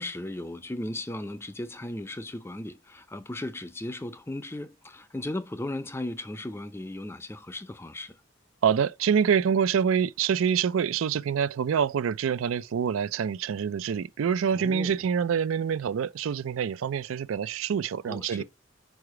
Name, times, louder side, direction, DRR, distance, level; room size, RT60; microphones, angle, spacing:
voice 1, 0.0-8.1 14.5-14.9 18.1-18.4, left 1 dB, 10° left, 0.4 m, -36 dB
voice 2, 8.6-18.4, right 7 dB, 80° right, 0.4 m, -26 dB
4.8 x 4.8 x 4.8 m
head